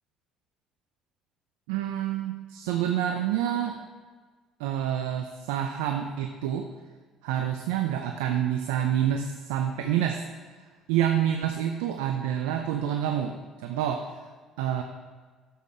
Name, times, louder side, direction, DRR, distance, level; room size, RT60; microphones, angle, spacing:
voice 1, 1.7-3.8 4.6-6.7 7.2-10.2 10.9-14.1 14.6-14.8, right 10 dB, 85° right, 4 dB, 0.6 m, -28 dB
10.5 x 7.4 x 4.3 m, 1.4 s
hypercardioid pair, 65°, 0 cm